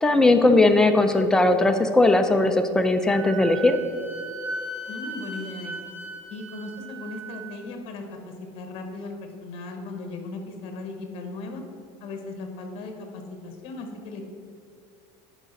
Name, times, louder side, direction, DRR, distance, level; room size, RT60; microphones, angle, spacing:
voice 1, 0.0-3.8, left 2 dB, 5° left, 6 dB, 0.3 m, -19 dB
Wind instrument woodwind instrument, 3.1-7.5, right 2 dB, 10° right, 1.0 m, -37 dB
voice 2, 4.9-5.7 6.3-11.6 12.0-14.2, left 3 dB, 45° left, 4 dB, 1.1 m, -37 dB
9.4 x 5.1 x 4.0 m, 2.4 s
cardioid pair, 160°, 13 cm